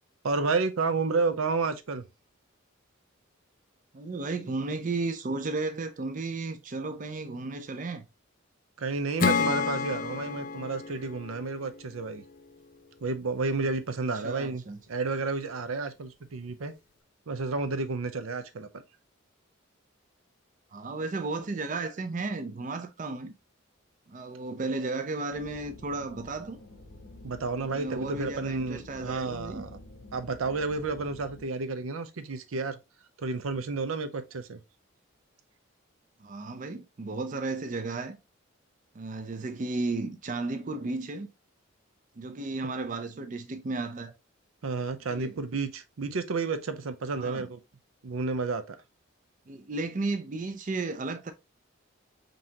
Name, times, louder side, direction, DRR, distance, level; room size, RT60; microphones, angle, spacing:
voice 1, 0.2-2.0 8.8-12.2 13.0-14.6 14.9-16.7 17.3-18.7 27.2-29.7 30.1-32.8 33.2-34.6 44.6-47.6 48.0-48.8, right 4 dB, 85° right, 0.6 m, -31 dB
voice 2, 3.9-8.0 14.1-14.8 20.7-23.3 24.1-26.6 27.6-29.6 36.2-38.2 38.9-41.3 42.2-44.1 45.1-45.4 47.2-47.5 49.5-51.3, right 3 dB, 40° right, 0.4 m, -34 dB
Acoustic guitar / Strum, 9.2-12.7, left 5 dB, 40° left, 0.4 m, -30 dB
sound 1, 25.3-31.4, left 2 dB, 70° left, 0.8 m, -49 dB
5.3 x 2.8 x 2.8 m
head